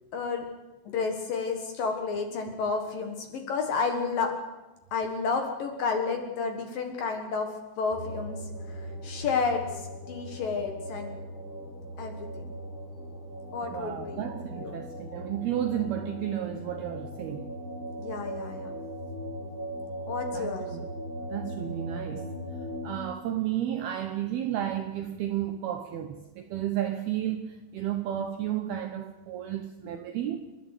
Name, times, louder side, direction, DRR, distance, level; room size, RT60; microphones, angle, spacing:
voice 1, 0.1-0.5 0.9-4.3 4.9-7.5 7.8-8.4 8.7-11.2 12.0-12.5 13.5-14.3 14.6-14.8 18.0-18.8 20.1-20.7, left 5 dB, 60° left, 2.6 m, -31 dB
sound 1, 7.9-22.9, equal, 15° left, 3.9 m, -39 dB
voice 2, 13.7-17.5 20.3-20.9 21.3-22.3 22.8-30.5, right 11 dB, 75° right, 2.3 m, -32 dB
29.5 x 11.0 x 8.2 m
omnidirectional pair, 5.6 m